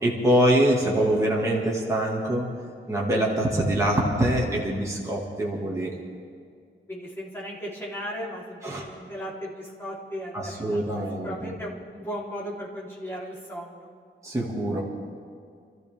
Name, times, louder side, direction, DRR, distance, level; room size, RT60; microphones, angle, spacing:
voice 1, 0.0-2.5 2.9-6.0 8.6-8.9 10.3-11.5 14.2-14.8, right 1 dB, 15° right, -4 dB, 2.1 m, -24 dB
voice 2, 6.9-13.9, equal, 10° left, -7 dB, 3.5 m, -36 dB
27.5 x 13.5 x 3.5 m, 2.2 s
wide cardioid pair, 175°, 21 cm